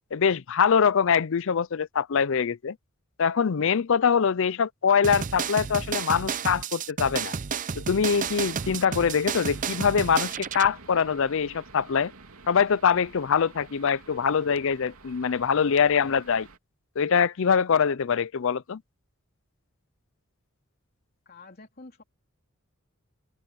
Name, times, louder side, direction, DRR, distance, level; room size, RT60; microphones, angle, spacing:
voice 1, 0.1-2.8 3.2-7.3 7.8-12.1 12.5-16.5 17.0-18.8, left 6 dB, 65° left, 0.5 m, -23 dB
sound 1, 5.0-10.7, right 6 dB, 40° right, 0.6 m, -31 dB
sound 2, 8.0-16.6, right 3 dB, 85° right, 2.8 m, -48 dB
voice 2, 21.2-22.0, left 3 dB, 45° left, 3.3 m, -48 dB
head